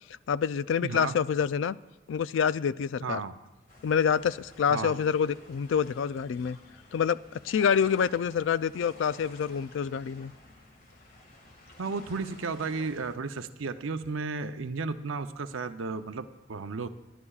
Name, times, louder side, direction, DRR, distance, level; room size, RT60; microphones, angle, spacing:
voice 1, 0.3-1.8 2.1-3.2 3.8-6.6 6.9-10.3, left 7 dB, 70° left, 16 dB, 0.3 m, -27 dB
voice 2, 0.8-1.2 3.0-3.3 4.7-5.0 11.8-16.9, right 4 dB, 85° right, 10 dB, 0.6 m, -33 dB
sound 1, 3.7-13.2, left 1 dB, 45° left, 2.0 m, -53 dB
28.5 x 11.0 x 2.4 m, 1.1 s
head